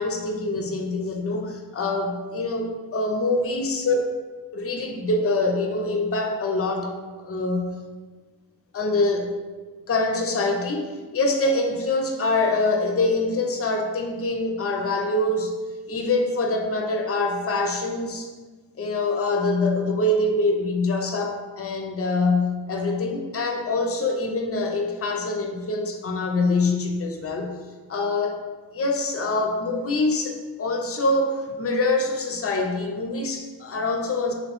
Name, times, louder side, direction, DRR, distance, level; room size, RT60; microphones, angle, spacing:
voice 1, 0.0-4.0 4.5-7.7 8.7-9.3 9.9-15.6 15.9-18.3 18.8-27.5 27.9-28.4 28.7-34.3, left 2 dB, 35° left, 3 dB, 0.5 m, -25 dB
3.0 x 2.9 x 2.9 m, 1.3 s
cardioid pair, 45°, 40 cm